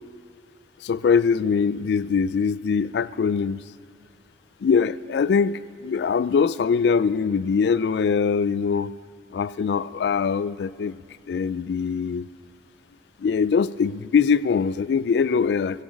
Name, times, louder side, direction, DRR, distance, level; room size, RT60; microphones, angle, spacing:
voice 1, 0.8-3.6 4.6-8.9 9.3-11.0 11.3-12.3 13.2-15.8, left 6 dB, 65° left, 18 dB, 0.3 m, -22 dB
17.5 x 15.5 x 5.2 m, 2.2 s
head